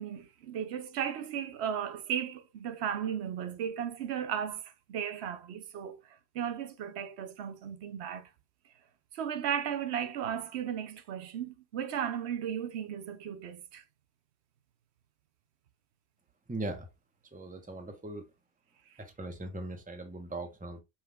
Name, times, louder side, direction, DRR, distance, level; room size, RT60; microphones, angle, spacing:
voice 1, 0.0-6.0 6.3-8.3 9.1-13.8, right 9 dB, 85° right, 0.9 m, -35 dB
voice 2, 16.5-16.9 17.3-18.2 19.0-20.8, right 2 dB, 10° right, 0.7 m, -39 dB
5.7 x 2.3 x 3.4 m
omnidirectional pair, 1.1 m